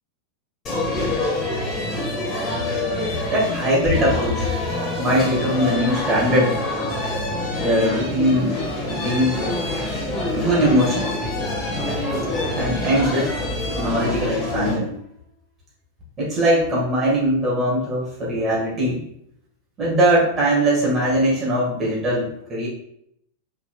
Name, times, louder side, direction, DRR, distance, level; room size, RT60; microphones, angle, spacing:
sound 1, 0.7-14.7, left 2 dB, 25° left, 1.4 m, -26 dB
voice 1, 3.3-6.6 7.6-9.6 10.3-11.1 12.5-13.4 13.8-14.9 16.2-19.0 19.8-22.7, equal, 20° right, -6 dB, 1.6 m, -21 dB
5.7 x 3.8 x 2.3 m, 0.72 s
figure-of-eight pair, 90°, 0 cm